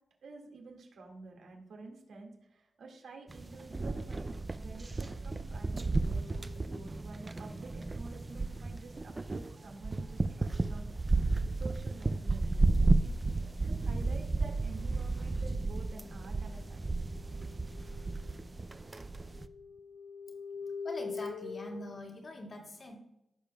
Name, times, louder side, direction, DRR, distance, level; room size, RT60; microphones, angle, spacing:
voice 1, 0.2-11.1 11.6-13.1 13.4-17.1, right 3 dB, 85° right, 1 dB, 2.0 m, -50 dB
sound 1, 3.3-19.5, right 3 dB, 20° right, 0.4 m, -33 dB
sound 2, 5.6-7.1 14.9-18.5 18.8-22.0, left 5 dB, 75° left, 0.4 m, -46 dB
voice 2, 20.8-23.0, left 1 dB, 40° left, 0 dB, 2.0 m, -43 dB
15.0 x 6.8 x 2.3 m, 0.85 s
wide cardioid pair, 140°, 0 cm